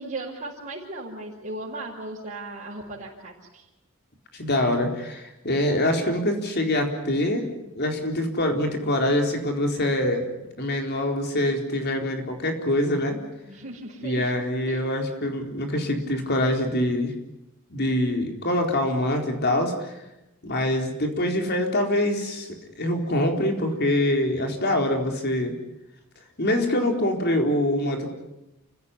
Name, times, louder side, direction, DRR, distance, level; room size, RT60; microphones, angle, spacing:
voice 1, 0.0-3.6 13.5-14.3 14.7-14.9, right 2 dB, 35° right, -7 dB, 5.5 m, -36 dB
voice 2, 4.3-7.4 7.8-10.2 10.6-13.2 14.0-17.1 17.7-20.0 20.4-22.5 22.8-25.5 26.4-28.1, left 1 dB, 50° left, 3 dB, 4.2 m, -24 dB
29.0 x 16.0 x 9.8 m, 0.93 s
head